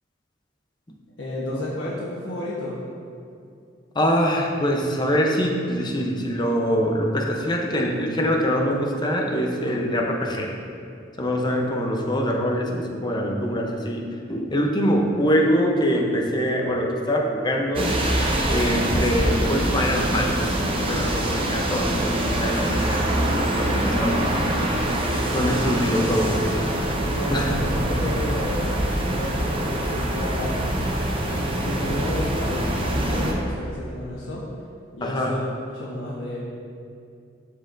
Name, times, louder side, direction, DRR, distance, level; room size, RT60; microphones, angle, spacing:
voice 1, 1.2-2.8 25.4-25.9 26.4-26.5 27.2-28.7 29.1-30.6 31.3-34.4 34.9-36.4, left 1 dB, 75° left, -7 dB, 1.1 m, -31 dB
voice 2, 3.9-10.5 11.2-18.0 18.5-24.5 25.3-26.5 27.3-27.6 35.0-35.4, equal, 25° left, 1 dB, 0.7 m, -24 dB
sound 1, 17.7-33.3, right 1 dB, 30° right, 0.7 m, -24 dB
12.0 x 4.4 x 2.6 m, 2.4 s
head